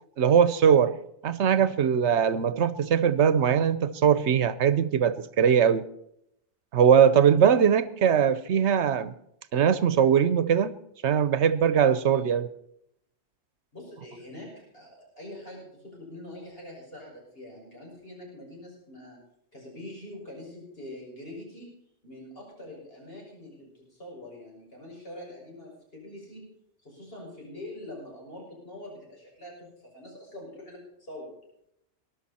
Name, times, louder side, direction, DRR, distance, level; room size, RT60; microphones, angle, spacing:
voice 1, 0.2-1.0 1.2-5.9 6.7-9.1 9.5-10.7 11.0-12.5, right 8 dB, 80° right, 15 dB, 1.1 m, -21 dB
voice 2, 13.7-19.2 19.5-21.7 22.0-26.5 26.8-29.7 29.9-31.3, left 1 dB, 60° left, -2 dB, 6.4 m, -44 dB
19.5 x 12.0 x 4.2 m, 0.75 s
omnidirectional pair, 1.2 m